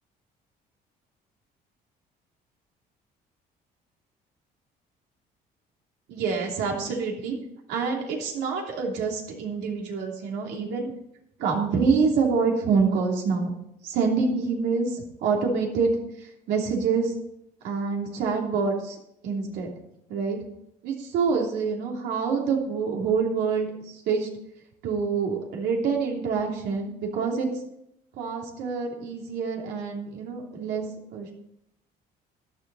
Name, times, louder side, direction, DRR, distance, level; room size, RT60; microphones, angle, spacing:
voice 1, 6.1-7.4 7.7-10.9 11.4-13.5 13.8-17.2 17.6-19.0 19.2-19.7 20.1-20.4 20.8-24.3 24.8-27.5 28.2-30.8 31.1-31.3, right 5 dB, 85° right, 0 dB, 2.9 m, -26 dB
13.5 x 10.5 x 4.1 m, 0.77 s
cardioid pair, 110°, 17 cm